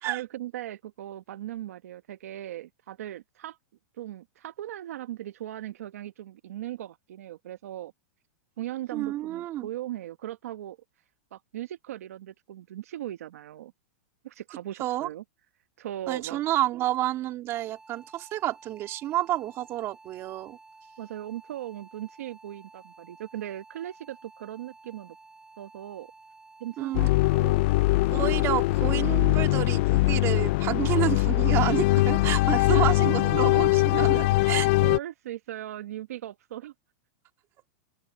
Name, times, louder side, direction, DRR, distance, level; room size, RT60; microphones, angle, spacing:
voice 1, 0.0-3.6 4.0-7.9 8.6-10.8 11.3-13.7 14.2-15.2 15.8-16.4 21.0-25.2 25.6-26.1 26.6-27.6 32.8-33.4 34.8-36.7, right 13 dB, 75° right, 1.1 m, -38 dB
voice 2, 8.9-9.7 14.8-15.1 16.1-20.6 26.8-27.1 28.1-34.7, right 14 dB, 35° right, 2.4 m, -29 dB
sound 1, 17.5-29.0, right 3 dB, 5° right, 7.7 m, -53 dB
sound 2, 26.9-35.0, left 20 dB, 55° left, 0.4 m, -22 dB
open air
supercardioid pair, 145°, 8 cm